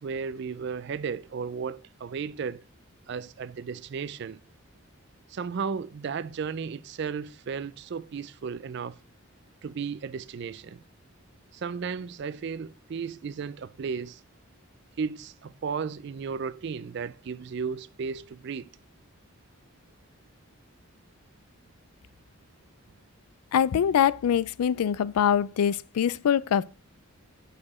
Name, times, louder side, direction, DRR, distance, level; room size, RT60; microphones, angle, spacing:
voice 1, 0.0-2.6 3.1-4.4 5.3-9.0 9.6-10.8 11.5-14.2 15.0-18.7, right 6 dB, 50° right, 0.3 m, -34 dB
voice 2, 23.5-26.6, left 8 dB, 85° left, 0.3 m, -24 dB
6.7 x 4.8 x 4.2 m
head